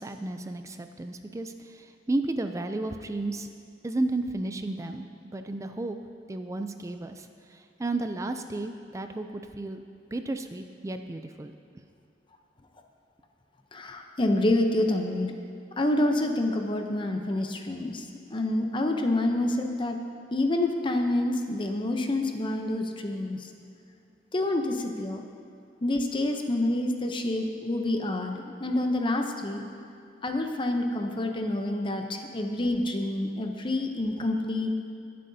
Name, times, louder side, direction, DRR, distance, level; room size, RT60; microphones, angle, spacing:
voice 1, 0.0-3.5 3.8-5.1 5.3-6.0 6.3-9.8 10.1-11.5, right 2 dB, 20° right, 7 dB, 0.4 m, -33 dB
voice 2, 13.7-15.3 15.8-18.0 18.3-20.0 20.3-23.4 24.3-25.2 25.8-29.6 30.2-34.7, left 1 dB, 30° left, 4 dB, 0.7 m, -27 dB
21.5 x 7.6 x 2.7 m, 2.4 s
head